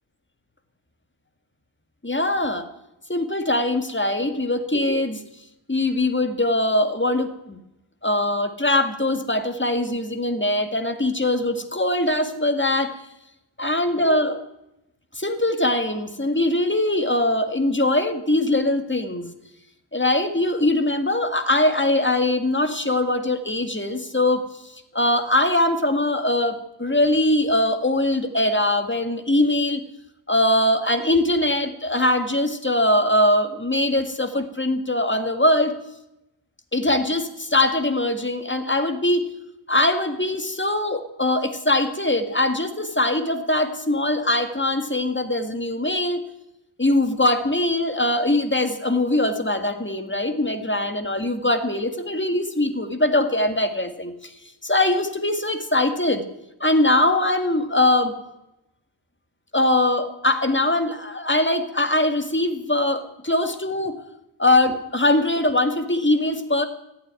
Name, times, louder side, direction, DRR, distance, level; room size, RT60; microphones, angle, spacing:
voice 1, 2.0-2.7 3.1-5.2 5.7-7.6 8.0-13.0 13.6-14.4 15.2-19.3 19.9-29.8 30.3-35.7 36.7-39.2 39.7-46.2 46.8-54.3 54.6-56.2 56.6-58.1 59.5-64.0 64.4-66.7, left 1 dB, 25° left, 7 dB, 1.9 m, -22 dB
15.5 x 8.9 x 9.6 m, 0.88 s
wide cardioid pair, 60°, 47 cm